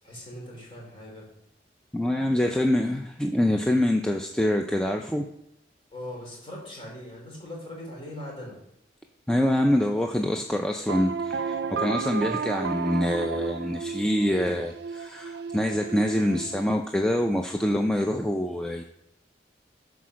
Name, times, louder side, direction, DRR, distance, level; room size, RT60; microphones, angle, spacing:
voice 1, 0.0-1.3 2.4-2.9 5.9-8.6, left 1 dB, 30° left, -2 dB, 3.2 m, -40 dB
voice 2, 1.9-5.3 9.3-18.8, left 1 dB, 5° left, 3 dB, 0.4 m, -25 dB
sound 1, 10.9-16.8, right 5 dB, 70° right, 0.4 m, -32 dB
10.0 x 4.7 x 6.2 m, 0.80 s
head